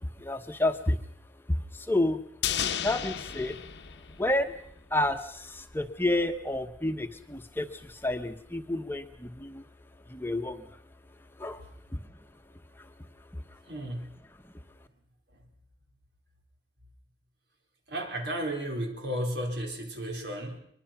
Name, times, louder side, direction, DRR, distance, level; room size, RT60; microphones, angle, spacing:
voice 1, 0.0-1.0 1.5-2.2 2.8-3.6 4.2-4.6 4.9-9.6 10.1-10.7 11.4-11.6 11.9-12.0 12.8-12.9 13.3-13.4, left 1 dB, 15° left, 6 dB, 1.0 m, -30 dB
sound 1, 2.4-4.8 5.1-5.2, left 9 dB, 80° left, 1.0 m, -33 dB
voice 2, 13.7-14.2 17.9-20.6, right 1 dB, 75° right, 3 dB, 4.3 m, -33 dB
23.0 x 22.5 x 5.9 m, 0.65 s
head